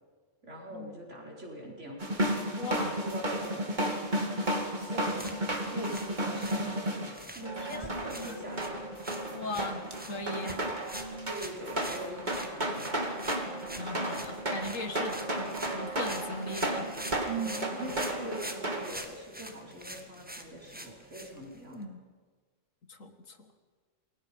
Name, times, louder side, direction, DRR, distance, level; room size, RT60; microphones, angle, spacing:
voice 1, 0.4-2.2 2.8-3.8 4.8-5.4 5.7-7.0 7.3-8.9 11.2-13.1 17.3-21.9, right 2 dB, 65° right, -2 dB, 5.4 m, -42 dB
sound 1, 2.0-18.9, right 1 dB, 35° right, 2.6 m, -33 dB
voice 2, 2.6-3.0 7.6-8.4 9.3-9.8 10.1-10.6 13.8-16.9 21.5-22.0 22.9-23.5, left 2 dB, 80° left, 8 dB, 2.2 m, -39 dB
sound 2, 5.0-21.8, right 1 dB, 5° right, 1.7 m, -46 dB
28.5 x 22.5 x 5.5 m, 1.5 s
omnidirectional pair, 1.3 m